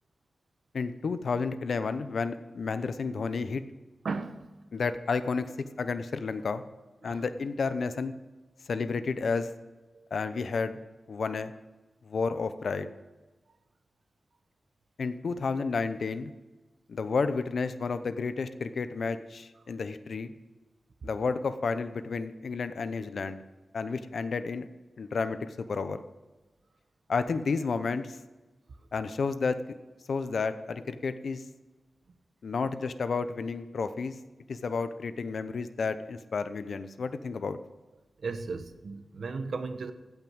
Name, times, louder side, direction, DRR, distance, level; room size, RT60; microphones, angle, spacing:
voice 1, 0.7-3.6 4.7-5.5 5.8-6.6 7.0-8.1 8.7-9.5 10.1-10.8 11.1-11.5 12.0-12.9 15.0-16.3 16.9-20.3 21.0-23.4 23.7-24.7 25.0-26.0 27.1-28.2 28.9-29.6 30.1-31.4 32.4-34.1 34.5-37.6, left 4 dB, 70° left, 11 dB, 0.8 m, -31 dB
voice 2, 4.0-4.5 7.0-7.2 9.9-10.0 38.2-39.9, right 4 dB, 70° right, 9 dB, 1.0 m, -35 dB
16.0 x 6.0 x 7.9 m, 1.2 s
wide cardioid pair, 125°, 0 cm